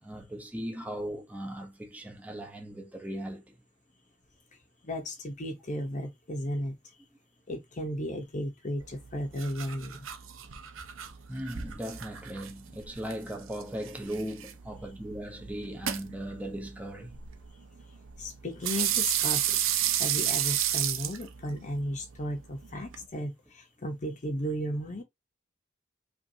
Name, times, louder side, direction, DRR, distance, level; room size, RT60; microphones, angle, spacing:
voice 1, 0.0-3.6 11.3-17.2, right 1 dB, 10° right, 0.7 m, -38 dB
voice 2, 4.8-7.0 7.5-10.0 17.5-17.6 18.2-19.6 20.0-25.0, equal, 40° left, 0.8 m, -35 dB
sound 1, 8.8-23.0, right 11 dB, 85° right, 0.6 m, -33 dB
5.2 x 2.6 x 2.7 m
head